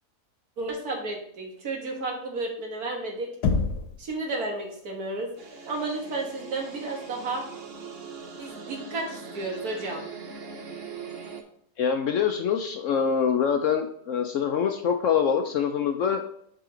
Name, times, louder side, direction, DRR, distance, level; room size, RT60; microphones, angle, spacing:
voice 1, 0.6-3.3 4.0-5.3 5.6-7.5 8.4-10.0, right 2 dB, 65° right, 1 dB, 1.9 m, -32 dB
Knock, 3.4-4.1, left 5 dB, 85° left, 1.4 m, -25 dB
sound 1, 5.4-11.4, right 5 dB, 50° right, 0.9 m, -41 dB
voice 2, 11.8-16.2, left 7 dB, 65° left, 5 dB, 0.8 m, -25 dB
7.6 x 5.0 x 3.8 m, 0.67 s
omnidirectional pair, 1.7 m